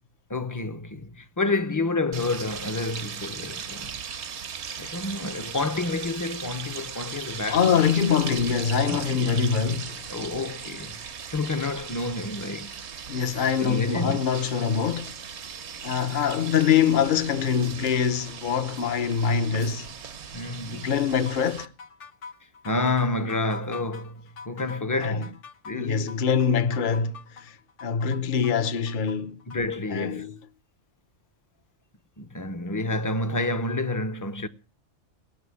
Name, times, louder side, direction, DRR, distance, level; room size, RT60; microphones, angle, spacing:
voice 1, 0.3-4.0 4.8-7.9 8.9-9.4 10.1-11.0 11.3-12.8 13.6-14.2 20.3-20.9 22.6-25.3 25.6-26.1 29.5-30.3 32.2-34.5, left 2 dB, 20° left, 0.6 m, -29 dB
sound 1, 2.1-21.7, right 7 dB, 65° right, 1.1 m, -38 dB
voice 2, 7.5-10.0 13.1-15.1 15.8-19.9 20.7-21.7 25.0-25.3 25.7-29.4 29.9-30.3, left 7 dB, 45° left, 0.9 m, -24 dB
sound 2, 21.3-29.8, left 5 dB, 70° left, 1.3 m, -44 dB
18.0 x 6.9 x 9.6 m
omnidirectional pair, 1.3 m